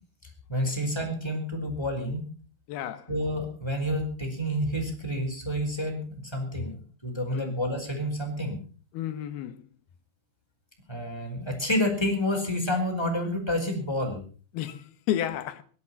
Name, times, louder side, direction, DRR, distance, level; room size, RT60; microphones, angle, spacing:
voice 1, 0.2-2.3 3.1-8.6 10.9-14.2, left 1 dB, 5° left, 4.3 m, -29 dB
voice 2, 2.7-3.1 7.3-7.6 8.9-9.6 14.5-15.6, left 11 dB, 75° left, 2.9 m, -32 dB
18.0 x 12.0 x 5.8 m
omnidirectional pair, 4.8 m